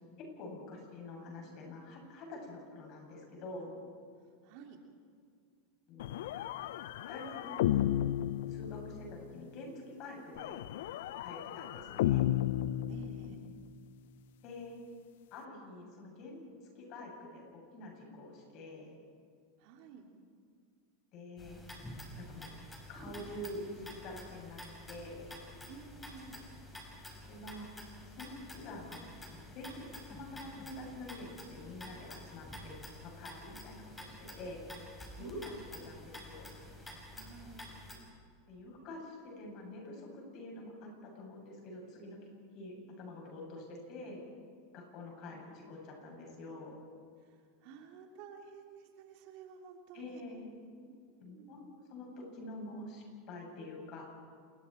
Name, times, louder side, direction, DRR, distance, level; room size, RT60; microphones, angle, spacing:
voice 1, 0.2-3.7 5.9-6.3 7.1-7.9 8.5-10.6 11.2-12.3 14.4-14.8 15.3-16.4 16.7-19.0 21.1-21.6 22.2-22.5 22.9-24.6 24.9-25.3 27.3-27.7 28.2-29.0 29.5-32.7 33.0-34.6 35.2-35.5 35.8-36.5 38.5-42.2 42.5-44.2 44.7-46.8 49.9-50.5 51.2-51.6 51.9-54.1, left 2 dB, 50° left, 0 dB, 7.8 m, -47 dB
voice 2, 4.4-4.8 12.9-13.4 19.6-20.1 25.7-26.4 35.2-35.5 37.1-37.7 45.3-45.6 47.6-50.2 51.3-51.6, right 6 dB, 60° right, 2 dB, 3.2 m, -52 dB
sound 1, 6.0-9.3 10.4-13.6, left 12 dB, 70° left, 0.6 m, -33 dB
sound 2, 21.4-38.0, left 1 dB, 10° left, 5.3 m, -49 dB
28.0 x 21.5 x 4.6 m, 2.2 s
hypercardioid pair, 105°, 0 cm